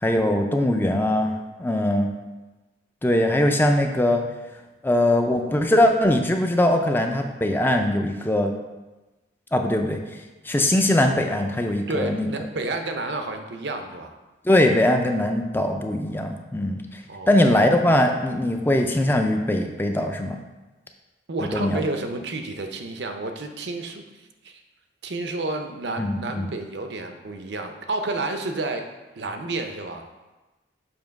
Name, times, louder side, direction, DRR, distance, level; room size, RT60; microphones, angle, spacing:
voice 1, 0.0-2.1 3.0-4.2 4.8-8.5 9.5-10.0 10.5-12.3 14.4-17.0 17.3-20.4 21.5-21.8 26.0-26.5, left 1 dB, 10° left, 4 dB, 0.4 m, -21 dB
voice 2, 11.9-14.1 17.1-17.5 21.3-24.0 24.4-24.6 25.0-28.9 29.1-30.0, right 2 dB, 70° right, 5 dB, 0.6 m, -30 dB
7.0 x 3.0 x 5.2 m, 1.1 s
head